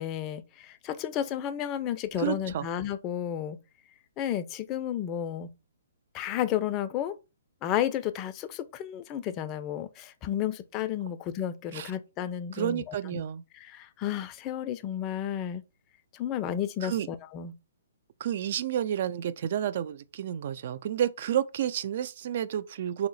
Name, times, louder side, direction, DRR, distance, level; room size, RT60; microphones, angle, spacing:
voice 1, 0.0-3.6 4.2-5.5 6.1-7.2 7.6-13.2 13.5-15.6 16.1-17.5, left 10 dB, 25° left, 0.4 m, -32 dB
voice 2, 2.2-2.7 11.7-11.9 12.5-13.4 16.8-17.1 18.2-23.1, right 10 dB, 50° right, 0.3 m, -30 dB
2.8 x 2.0 x 3.9 m
hypercardioid pair, 135°, 0 cm